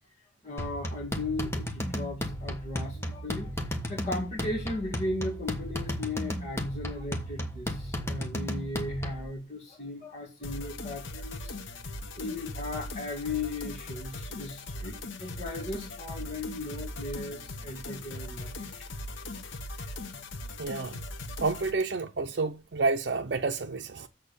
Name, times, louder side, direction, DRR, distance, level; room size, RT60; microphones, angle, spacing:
voice 1, 0.4-11.5 12.1-18.7, left 2 dB, 35° left, 2.3 m, -37 dB
sound 1, 0.6-9.3, equal, 15° left, 1.3 m, -34 dB
sound 2, 10.4-21.7, left 2 dB, 85° left, 1.0 m, -39 dB
voice 2, 20.6-21.0 21.4-24.1, right 3 dB, 60° right, 0.7 m, -29 dB
7.3 x 6.7 x 6.7 m
head